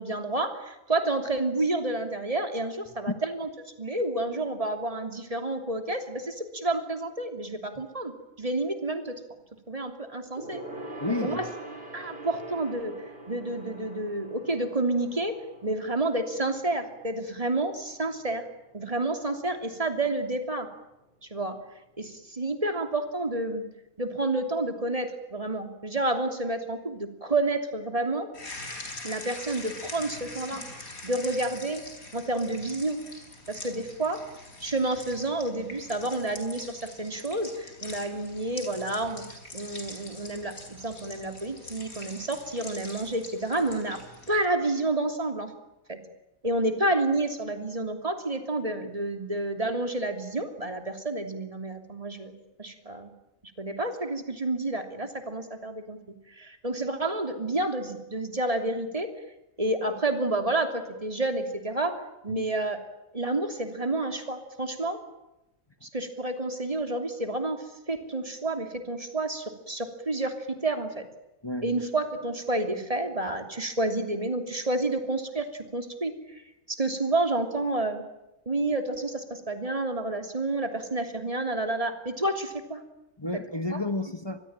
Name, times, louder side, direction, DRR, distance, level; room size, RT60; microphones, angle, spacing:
voice 1, 0.0-3.5 3.8-9.2 9.7-10.6 11.2-11.4 11.9-13.0 13.3-15.3 15.6-18.4 18.7-20.7 21.2-21.6 22.0-23.7 24.0-28.3 29.0-30.6 31.0-31.8 32.1-33.0 33.5-34.2 34.6-39.2 39.5-44.0 44.3-45.5 45.9-46.0 46.4-53.1 53.6-56.0 56.4-59.1 59.6-62.8 63.1-65.0 65.8-67.6 67.9-71.0 71.6-76.4 76.7-78.0 78.5-82.8 83.7-83.8, right 2 dB, 25° right, 3.1 m, -29 dB
Gong, 10.4-20.1 20.4-20.7 21.0-21.1, right 1 dB, 40° right, 4.6 m, -44 dB
voice 2, 11.0-11.5 62.3-62.4 71.4-71.7 83.2-84.4, left 2 dB, 20° left, 1.3 m, -31 dB
sound 1, 28.3-44.5, left 2 dB, 80° left, 5.1 m, -43 dB
25.5 x 21.5 x 9.0 m
omnidirectional pair, 1.5 m